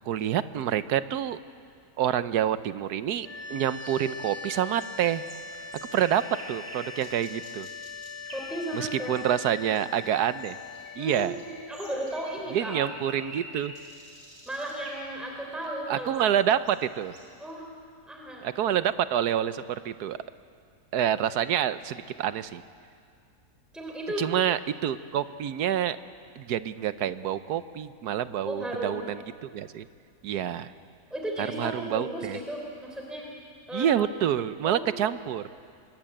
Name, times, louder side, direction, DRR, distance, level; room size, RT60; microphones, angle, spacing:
voice 1, 0.1-1.4 2.0-5.2 5.9-7.7 8.7-10.6 11.0-11.4 12.5-13.7 15.9-17.1 18.4-20.2 20.9-22.6 24.2-26.0 26.4-29.9 30.2-30.7 31.4-32.4 33.7-35.4, right 10 dB, 85° right, 13 dB, 1.3 m, -27 dB
sound 1, 3.2-14.3, left 5 dB, 55° left, 7.0 m, -42 dB
sound 2, 3.8-17.3, right 1 dB, 30° right, 5.7 m, -48 dB
voice 2, 8.3-9.2 11.0-12.8 14.4-16.3 17.4-17.7 18.1-18.7 23.7-24.3 28.4-29.1 31.1-33.3 33.7-34.1 34.6-35.1, right 1 dB, ahead, 0 dB, 3.4 m, -35 dB
25.0 x 21.5 x 8.9 m, 2.3 s
omnidirectional pair, 1.6 m